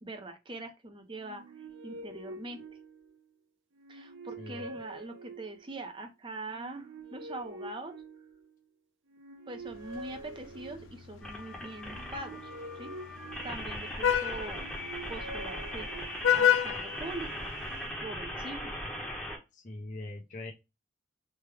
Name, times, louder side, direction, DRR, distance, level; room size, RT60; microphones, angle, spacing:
voice 1, 0.0-2.6 3.9-8.0 9.5-12.5 12.8-13.0 13.4-14.7 15.1-15.9 16.3-17.5 18.0-18.7, right 2 dB, 25° right, 0.6 m, -42 dB
sound 1, 1.1-3.3 3.7-5.8 6.5-8.6 9.1-11.1 11.8-13.9 14.4-16.4, right 2 dB, 80° right, 0.6 m, -46 dB
voice 2, 4.4-4.7 19.5-20.5, left 2 dB, 40° left, 0.6 m, -42 dB
Vehicle horn car horn honking, 9.7-17.8, left 9 dB, 90° left, 0.4 m, -33 dB
sound 2, 11.2-19.4, equal, 5° left, 0.8 m, -39 dB
3.2 x 2.2 x 3.3 m
head